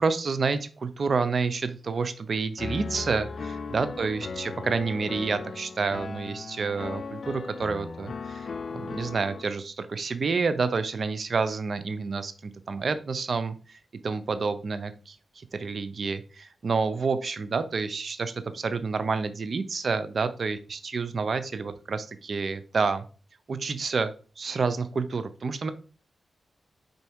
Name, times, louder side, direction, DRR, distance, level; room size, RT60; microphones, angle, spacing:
voice 1, 0.0-8.5 8.7-13.8 14.0-15.1 15.5-23.0 23.5-24.1 24.4-25.7, right 4 dB, 65° right, 11 dB, 0.5 m, -29 dB
Piano, 2.6-9.4, left 4 dB, 65° left, 0.4 m, -37 dB
4.2 x 2.7 x 4.6 m, 0.37 s
supercardioid pair, 45°, 0 cm